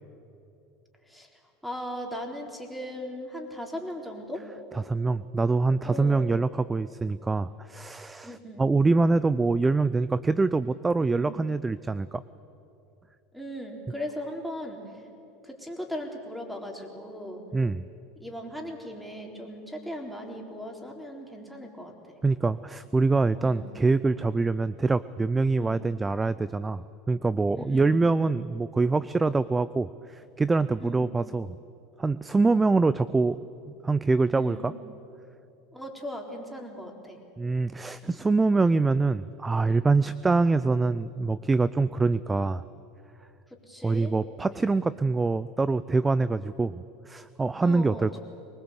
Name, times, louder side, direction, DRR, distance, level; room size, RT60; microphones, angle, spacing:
voice 1, 1.1-4.5 5.8-6.3 8.2-8.7 11.0-11.3 13.3-15.0 15.4-17.4 18.2-22.2 23.4-23.7 25.6-25.8 27.5-28.0 30.8-31.1 34.3-34.7 35.7-37.2 38.5-38.7 43.7-44.1 47.6-48.1, equal, ahead, 2 dB, 3.9 m, -38 dB
voice 2, 4.8-12.2 17.5-17.9 22.2-31.6 32.0-33.4 33.8-34.7 37.4-42.6 43.8-48.2, right 3 dB, 15° right, 17 dB, 0.5 m, -25 dB
23.0 x 19.5 x 8.2 m, 2.8 s
hypercardioid pair, 90°, 0 cm